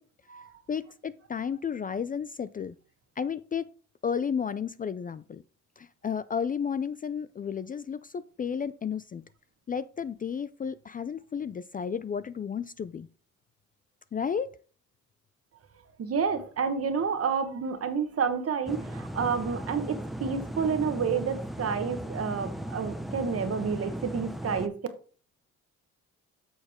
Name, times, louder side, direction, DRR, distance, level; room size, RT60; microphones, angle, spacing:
voice 1, 0.7-2.8 3.2-3.7 4.0-5.4 5.8-9.2 9.7-13.1 14.1-14.6, left 7 dB, 30° left, 15 dB, 0.4 m, -32 dB
voice 2, 16.0-24.7, right 6 dB, 50° right, 9 dB, 1.3 m, -29 dB
sound 1, 18.7-24.7, right 1 dB, ahead, 0.8 m, -37 dB
7.9 x 6.4 x 3.6 m, 0.40 s
cardioid pair, 90°, 30 cm